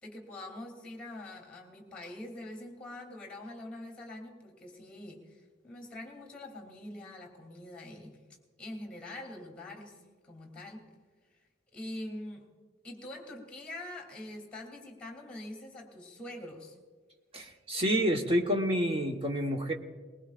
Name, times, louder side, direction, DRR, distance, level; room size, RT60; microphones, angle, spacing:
voice 1, 0.0-5.2 5.6-8.2 8.6-10.9 11.7-12.5 12.8-16.8, left 1 dB, 5° left, 1 dB, 3.0 m, -44 dB
voice 2, 17.3-19.7, equal, 30° right, 2 dB, 1.2 m, -28 dB
22.0 x 20.0 x 2.5 m, 1.4 s
head